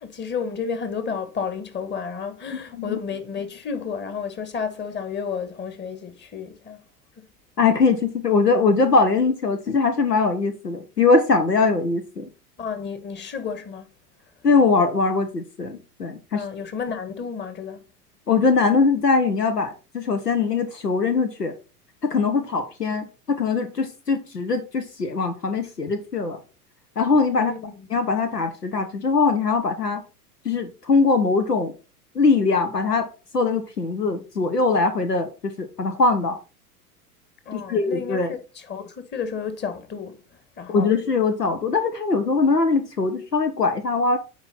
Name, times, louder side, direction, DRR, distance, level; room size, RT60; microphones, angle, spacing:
voice 1, 0.0-6.8 12.6-13.8 16.3-17.8 27.4-27.9 37.4-40.2 40.6-40.9, left 6 dB, 25° left, 1.5 m, -31 dB
voice 2, 7.6-12.3 14.4-16.4 18.3-21.5 22.0-26.4 27.0-27.5 27.9-30.0 30.4-31.7 32.1-33.1 33.3-36.4 37.5-38.3 40.7-44.2, left 4 dB, 85° left, 1.2 m, -21 dB
9.6 x 4.7 x 4.2 m
figure-of-eight pair, 85°, 46 cm